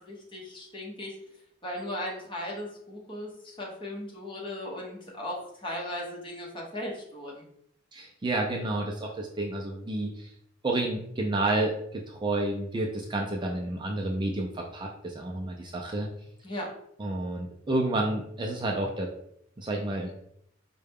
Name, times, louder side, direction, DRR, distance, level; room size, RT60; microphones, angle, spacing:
voice 1, 0.1-1.1 1.6-7.4 16.4-16.7, left 1 dB, 25° left, -2 dB, 1.0 m, -37 dB
voice 2, 7.9-10.3 10.6-16.1 17.0-19.1 19.6-20.1, right 2 dB, 25° right, 0 dB, 0.3 m, -30 dB
4.6 x 2.1 x 3.4 m, 0.73 s
head